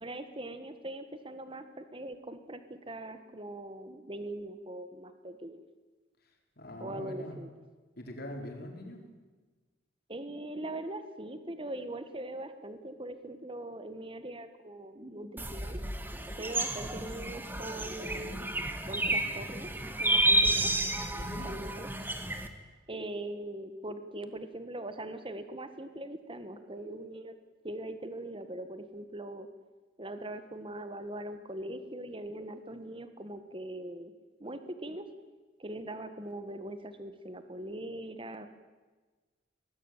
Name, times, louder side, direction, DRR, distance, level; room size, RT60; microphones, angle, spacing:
voice 1, 0.0-5.6 6.8-7.5 10.1-15.8 16.4-18.6 18.8-19.7 20.0-20.7 21.4-21.9 22.9-27.4 27.6-29.5 30.0-34.1 34.4-35.1 35.6-38.5, right 1 dB, 25° right, 10 dB, 1.6 m, -41 dB
voice 2, 6.6-7.4 8.0-9.0 21.1-21.5, left 1 dB, 55° left, 2 dB, 4.7 m, -42 dB
sound 1, 15.4-22.5, right 1 dB, 10° right, 1.7 m, -31 dB
24.0 x 19.5 x 9.2 m, 1.3 s
head